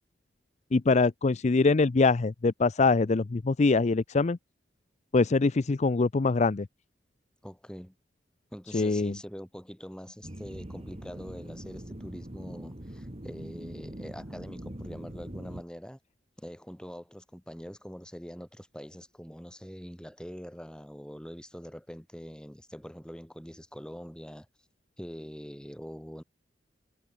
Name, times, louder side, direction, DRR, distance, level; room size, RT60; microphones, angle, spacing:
voice 1, 0.7-4.4 5.1-6.7 8.7-9.2, left 3 dB, 40° left, 0.5 m, -24 dB
voice 2, 7.4-7.9 8.5-16.0 16.4-24.5 25.0-26.2, equal, 5° left, 3.8 m, -44 dB
sound 1, 10.2-15.6, right 1 dB, 35° right, 2.3 m, -42 dB
head